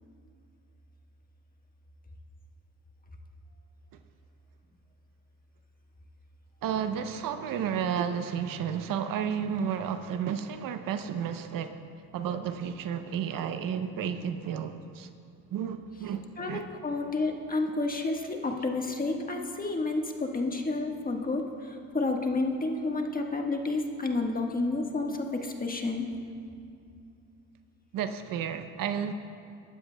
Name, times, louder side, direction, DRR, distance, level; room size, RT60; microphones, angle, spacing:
voice 1, 6.6-11.7 12.1-15.1 15.5-16.6 27.9-29.1, right 8 dB, 60° right, 9 dB, 0.7 m, -32 dB
voice 2, 16.4-26.1, left 3 dB, 25° left, 2 dB, 1.4 m, -30 dB
20.0 x 11.5 x 2.3 m, 2.5 s
supercardioid pair, 80°, 37 cm